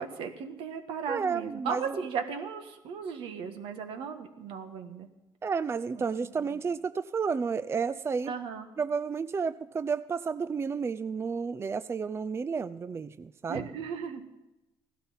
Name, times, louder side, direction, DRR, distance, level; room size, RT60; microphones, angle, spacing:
voice 1, 0.0-5.1 8.3-8.7 13.5-14.2, right 6 dB, 80° right, 7 dB, 1.5 m, -36 dB
voice 2, 1.1-2.0 5.4-8.3 8.8-13.7, right 5 dB, 30° right, 14 dB, 0.4 m, -31 dB
15.5 x 12.0 x 5.6 m, 0.98 s
cardioid pair, 85°, 9 cm